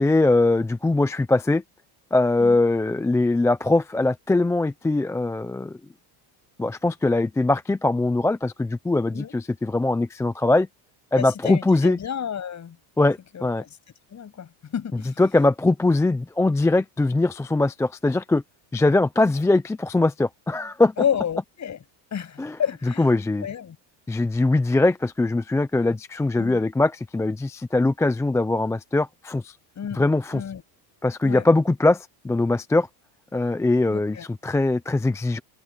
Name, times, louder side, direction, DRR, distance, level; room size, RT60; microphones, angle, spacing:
voice 1, 0.0-1.6 2.1-5.8 6.6-10.7 11.1-12.0 13.0-13.6 15.2-18.4 18.7-20.9 22.4-22.6 23.0-23.5 24.1-29.6 29.9-30.4 31.0-32.9 33.3-35.4, left 2 dB, 5° left, 0.4 m, -21 dB
voice 2, 11.2-12.8 13.3-13.7 14.1-15.2 21.0-21.8 22.1-23.1 23.4-23.8 26.4-26.6 29.8-30.0 30.3-30.6 31.2-31.4 33.9-34.3, left 8 dB, 35° left, 6.9 m, -30 dB
cardioid pair, 130°, 50 cm